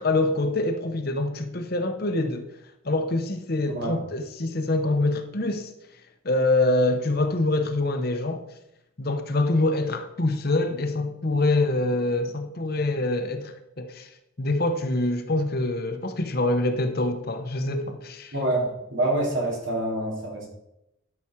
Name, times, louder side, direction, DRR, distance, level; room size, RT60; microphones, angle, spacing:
voice 1, 0.0-2.5 2.8-5.7 6.2-8.4 9.0-14.1 14.4-18.3, left 2 dB, 45° left, 0.9 m, -25 dB
voice 2, 3.6-4.0 18.3-20.5, right 1 dB, 65° right, 3.5 m, -26 dB
12.0 x 6.1 x 4.6 m
head